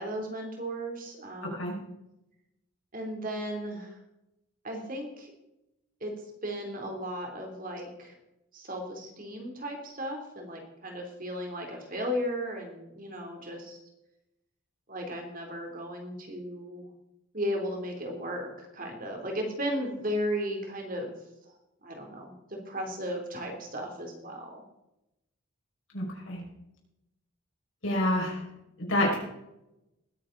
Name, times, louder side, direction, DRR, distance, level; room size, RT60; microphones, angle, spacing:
voice 1, 0.0-1.8 2.9-4.0 4.6-5.3 6.0-6.1 6.4-8.2 8.5-13.8 14.9-16.9 17.3-21.2 21.8-24.6, equal, 40° right, 2 dB, 3.0 m, -35 dB
voice 2, 1.4-1.7 25.9-26.4 27.8-28.4 28.8-29.2, left 1 dB, 65° left, -1 dB, 5.4 m, -28 dB
20.5 x 10.0 x 3.9 m, 0.89 s
head